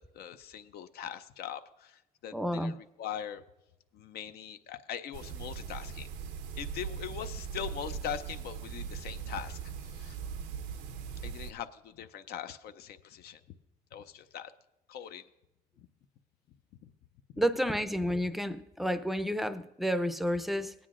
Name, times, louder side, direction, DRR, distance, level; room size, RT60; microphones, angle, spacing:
voice 1, 0.0-3.4 3.9-6.1 6.6-10.2 11.2-13.4 13.9-14.5 14.9-15.3 15.8-15.9 16.8-16.9, left 9 dB, 70° left, 10 dB, 0.6 m, -41 dB
voice 2, 2.3-2.7 17.4-20.7, equal, ahead, 12 dB, 0.5 m, -30 dB
sound 1, 5.1-11.5, right 7 dB, 90° right, 0.7 m, -40 dB
19.0 x 9.4 x 2.5 m, 0.93 s
cardioid pair, 110°, 17 cm